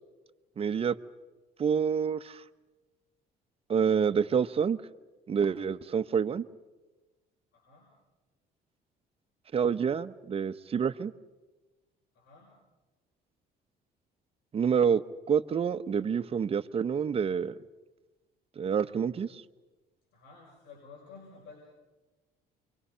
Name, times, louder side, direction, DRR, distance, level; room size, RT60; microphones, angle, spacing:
voice 1, 0.6-1.0 1.6-2.4 3.7-4.8 5.3-6.4 9.5-11.1 14.5-15.0 15.3-17.5 18.6-19.4, right 7 dB, 35° right, 11 dB, 0.9 m, -27 dB
voice 2, 7.5-7.9 12.1-12.5 20.1-21.6, left 4 dB, 90° left, -3 dB, 6.7 m, -52 dB
29.5 x 24.0 x 5.7 m, 1.2 s
cardioid pair, 110°, 17 cm